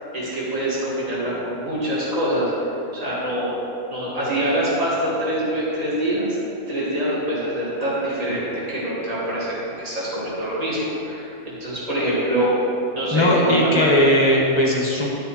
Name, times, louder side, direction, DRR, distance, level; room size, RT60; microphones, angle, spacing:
voice 1, 0.1-2.5 2.9-3.5 3.9-6.4 6.7-12.5 12.9-13.9, right 1 dB, 25° right, -8 dB, 2.0 m, -25 dB
voice 2, 13.1-15.1, left 1 dB, 20° left, -2 dB, 0.9 m, -18 dB
12.0 x 4.9 x 4.2 m, 2.8 s
omnidirectional pair, 1.6 m